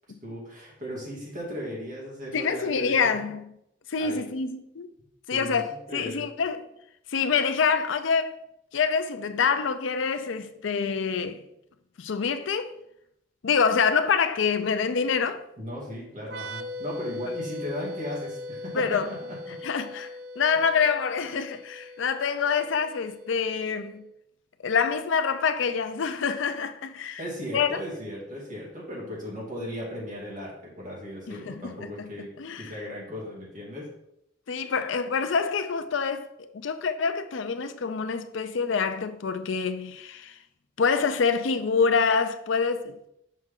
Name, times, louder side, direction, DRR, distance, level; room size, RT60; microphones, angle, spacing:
voice 1, 0.2-3.1 4.0-4.2 5.3-5.6 5.9-6.2 15.6-19.5 27.2-33.9 34.6-34.7, equal, 40° right, 2.4 m, -37 dB
voice 2, 2.3-3.4 3.9-4.9 5.3-6.6 7.1-8.4 8.7-11.4 12.0-12.7 13.4-15.4 18.7-19.1 19.6-24.0 24.6-27.2 27.5-27.8 31.3-32.1 32.4-32.7 34.5-36.3 36.5-40.3 40.8-43.0, left 5 dB, 75° left, 0.5 m, -26 dB
sound 1, 16.2-23.7, left 2 dB, 60° right, 0.4 m, -40 dB
6.3 x 5.4 x 3.7 m
head